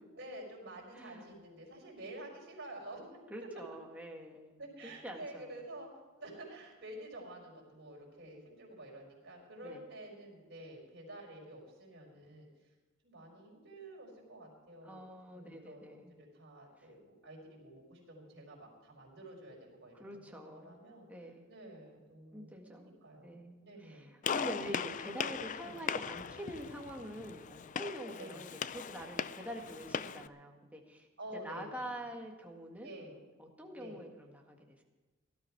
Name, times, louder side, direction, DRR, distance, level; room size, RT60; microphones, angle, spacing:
voice 1, 0.2-3.5 4.6-5.9 6.2-12.5 13.0-15.1 15.3-21.1 21.5-23.3 23.6-24.1 25.6-25.8 28.1-28.4 31.2-31.7 32.8-33.2 33.7-34.0, right 1 dB, 50° right, -2 dB, 5.2 m, -50 dB
voice 2, 0.9-1.3 3.3-5.5 9.6-9.8 14.8-16.2 20.0-20.8 21.1-21.4 22.3-22.9 23.2-31.1 31.4-32.9 33.4-34.8, equal, 5° right, 1 dB, 1.8 m, -46 dB
Gunshot gunfire, 24.2-30.3, left 6 dB, 35° left, 0.4 m, -39 dB
18.0 x 12.5 x 4.6 m, 1.2 s
head